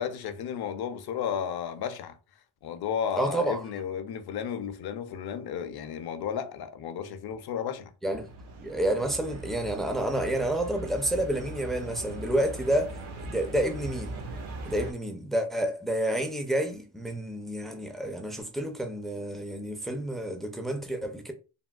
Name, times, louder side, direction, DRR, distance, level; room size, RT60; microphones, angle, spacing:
voice 1, 0.0-2.2 2.6-7.9, left 8 dB, 55° left, 0.5 m, -33 dB
voice 2, 3.2-3.6 8.0-8.3 8.6-14.2 14.7-21.3, right 1 dB, ahead, 0.4 m, -29 dB
sound 1, 8.1-14.9, right 2 dB, 80° right, 1.0 m, -40 dB
3.5 x 2.2 x 2.2 m
cardioid pair, 120°, 47 cm